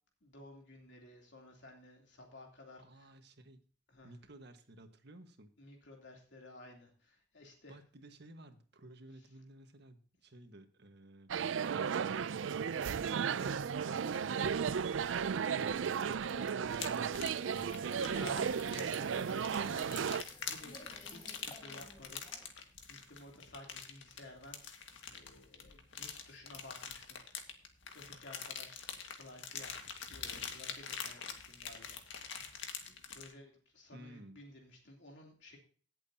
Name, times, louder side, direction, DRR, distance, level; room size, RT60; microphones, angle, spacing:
voice 1, 0.2-3.1 3.9-4.1 5.6-7.8 13.9-14.2 14.9-22.6 22.9-27.5 27.8-29.7 30.1-32.0 32.9-35.6, left 1 dB, 70° left, 0 dB, 3.1 m, -55 dB
voice 2, 2.8-3.6 4.0-5.5 7.7-11.3 17.4-17.9 33.9-34.4, right 1 dB, 65° right, 7 dB, 1.5 m, -55 dB
sound 1, 11.3-20.2, right 7 dB, 85° right, 0.4 m, -34 dB
sound 2, 16.7-33.3, left 6 dB, 85° left, 1.8 m, -45 dB
sound 3, 16.8-22.5, left 2 dB, 25° left, 1.6 m, -53 dB
17.5 x 7.8 x 2.8 m, 0.41 s
head